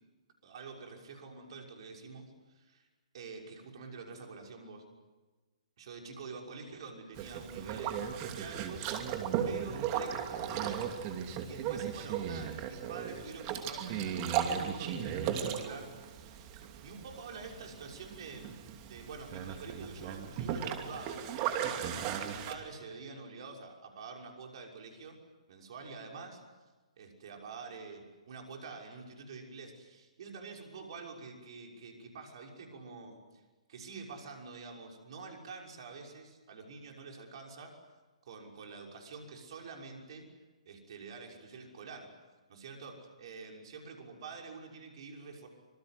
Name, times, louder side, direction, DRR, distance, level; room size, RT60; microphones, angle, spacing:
voice 1, 0.4-2.9 3.1-4.8 5.8-8.9 9.4-10.9 11.4-18.5 18.8-25.2 25.5-26.4 27.0-33.4 33.7-37.8 38.2-40.3 40.7-42.1 42.5-45.5, right 4 dB, 50° right, 1 dB, 6.2 m, -47 dB
Boat Water vehicle, 7.2-22.5, right 8 dB, 30° right, 2.8 m, -36 dB
26.5 x 25.0 x 7.9 m, 1.2 s
figure-of-eight pair, 130°, 4 cm